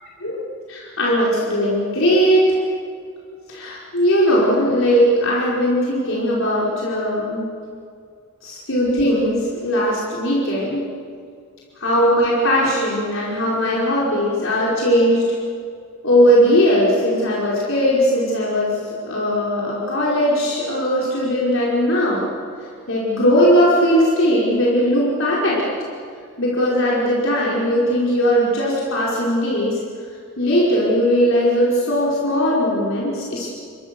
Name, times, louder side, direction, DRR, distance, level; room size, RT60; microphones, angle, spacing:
voice 1, 0.7-2.6 3.5-7.5 8.4-10.8 11.8-15.3 16.0-22.3 22.9-25.7 26.4-29.8 30.4-33.5, equal, 60° left, -6 dB, 5.2 m, -19 dB
29.5 x 23.0 x 7.0 m, 2.3 s
head